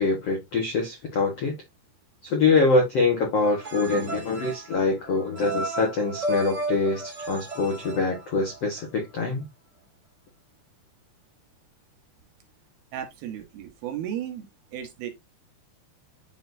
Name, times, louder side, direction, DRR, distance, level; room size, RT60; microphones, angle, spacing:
voice 1, 0.0-1.6 2.2-9.4, left 3 dB, 75° left, 1.4 m, -24 dB
sound 1, 3.4-8.8, right 2 dB, 35° right, 1.9 m, -34 dB
voice 2, 12.9-14.5 14.7-15.1, right 10 dB, 70° right, 2.7 m, -34 dB
10.0 x 4.0 x 2.6 m
omnidirectional pair, 5.1 m